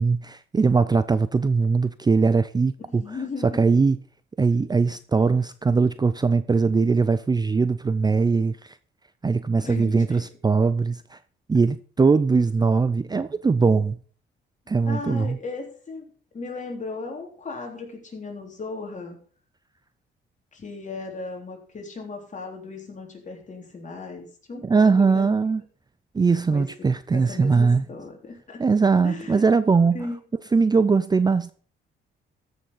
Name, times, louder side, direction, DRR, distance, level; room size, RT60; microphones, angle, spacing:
voice 1, 0.0-3.0 3.4-4.0 4.4-8.7 9.2-11.2 11.5-14.0 14.7-15.4 24.6-25.6 26.1-27.8 28.6-30.0 30.5-31.5, right 4 dB, 20° right, 0.5 m, -21 dB
voice 2, 2.9-3.8 9.5-10.2 14.9-19.2 20.5-25.4 26.5-26.7 27.1-28.6 29.0-29.4 29.9-30.2, left 3 dB, 40° left, 3.6 m, -36 dB
14.0 x 6.6 x 5.5 m
cardioid pair, 90°, 20 cm